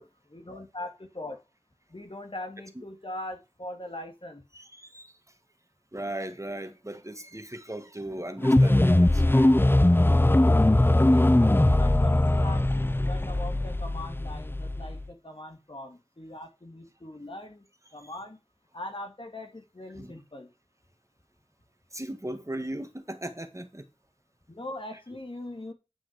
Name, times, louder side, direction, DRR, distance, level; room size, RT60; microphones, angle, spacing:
voice 1, 0.0-1.4 1.9-4.4 11.0-17.6 17.9-18.4 18.7-20.5 24.5-25.7, left 1 dB, 55° left, 2.3 m, -41 dB
voice 2, 4.5-5.1 5.9-9.5 20.0-20.1 21.9-23.8, right 1 dB, 30° right, 1.8 m, -37 dB
sound 1, 8.4-15.1, left 1 dB, 20° left, 0.6 m, -21 dB
9.9 x 5.8 x 5.1 m
wide cardioid pair, 45°, 10 cm